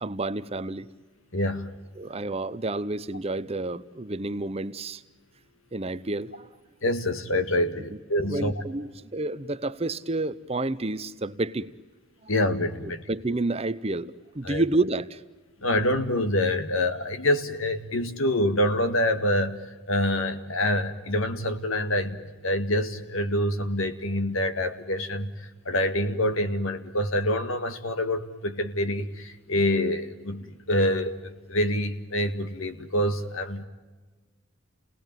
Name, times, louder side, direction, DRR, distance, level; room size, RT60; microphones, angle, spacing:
voice 1, 0.0-0.9 2.0-5.0 5.7-6.5 7.9-11.7 12.2-12.3 13.1-15.2, right 2 dB, 30° right, 13 dB, 0.7 m, -30 dB
voice 2, 1.3-1.7 6.8-8.5 12.3-13.0 14.4-14.6 15.6-33.7, left 1 dB, 75° left, 9 dB, 1.9 m, -26 dB
30.0 x 19.0 x 9.2 m, 1.3 s
head